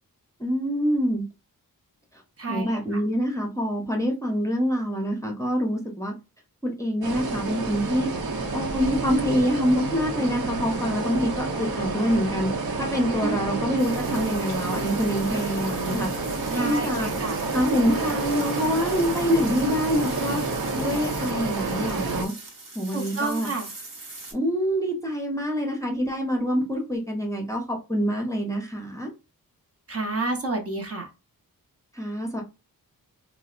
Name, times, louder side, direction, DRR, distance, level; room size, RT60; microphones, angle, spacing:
voice 1, 0.4-1.2 2.5-6.1 6.6-8.1 8.5-12.5 12.9-16.1 16.5-17.1 17.5-20.4 20.8-22.3 22.7-23.5 24.3-29.1 31.9-32.4, equal, 10° left, 0 dB, 0.6 m, -26 dB
voice 2, 2.4-3.0 13.2-13.8 16.5-17.4 22.9-23.7 29.9-31.1, right 3 dB, 40° right, 3 dB, 0.8 m, -30 dB
sound 1, 7.0-22.3, right 3 dB, 80° right, 0.9 m, -29 dB
sound 2, 13.8-24.3, right 3 dB, 60° right, 1.2 m, -41 dB
3.9 x 2.1 x 2.4 m, 0.28 s
wide cardioid pair, 155°, 36 cm